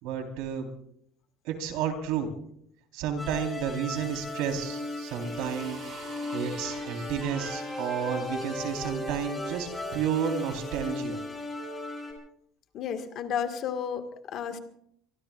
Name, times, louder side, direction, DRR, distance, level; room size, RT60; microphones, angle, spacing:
voice 1, 0.0-0.7 1.4-2.3 2.9-5.8 6.3-11.2, right 7 dB, 70° right, 3 dB, 3.8 m, -31 dB
sound 1, 3.2-12.1, left 2 dB, 5° left, 4.3 m, -37 dB
sound 2, 4.6-8.9 9.8-10.8 11.7-11.9, right 4 dB, 40° right, 7.5 m, -48 dB
voice 2, 12.7-14.6, left 8 dB, 40° left, 6 dB, 1.7 m, -32 dB
25.0 x 24.0 x 2.4 m, 0.67 s
cardioid pair, 180°, 0 cm